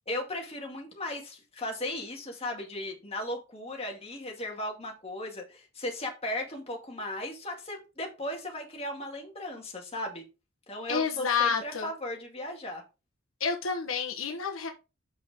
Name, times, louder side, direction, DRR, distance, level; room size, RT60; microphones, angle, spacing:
voice 1, 0.1-10.2 10.7-12.8, left 1 dB, 30° left, 2.1 m, -36 dB
voice 2, 10.9-11.9 13.4-14.7, left 6 dB, 75° left, 1.1 m, -29 dB
7.0 x 5.7 x 3.6 m
head